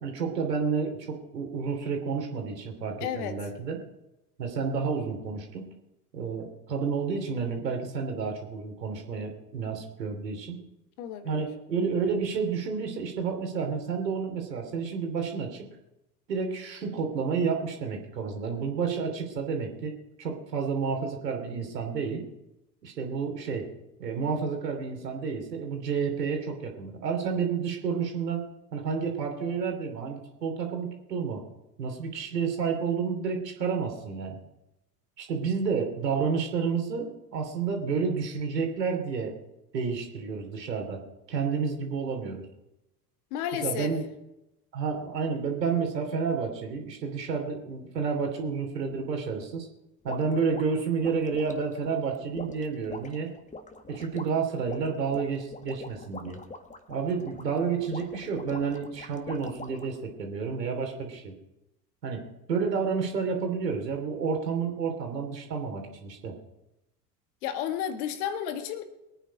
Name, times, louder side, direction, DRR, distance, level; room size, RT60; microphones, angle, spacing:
voice 1, 0.0-3.8 4.4-5.7 6.1-10.6 11.2-15.7 16.3-22.2 22.8-23.7 24.0-28.4 28.7-31.4 31.8-34.4 35.2-39.3 39.7-41.0 41.3-42.4 43.5-44.0 44.7-49.7 50.0-53.3 53.9-56.4 56.9-61.3 62.0-62.2 62.5-66.4, right 5 dB, 80° right, 3 dB, 3.1 m, -30 dB
voice 2, 3.0-3.4 11.0-11.4 43.3-43.9 67.4-68.9, left 10 dB, 65° left, 8 dB, 1.8 m, -32 dB
sound 1, 50.1-60.0, left 3 dB, 15° left, 1.6 m, -44 dB
22.5 x 9.2 x 5.1 m, 0.92 s
figure-of-eight pair, 70°, 48 cm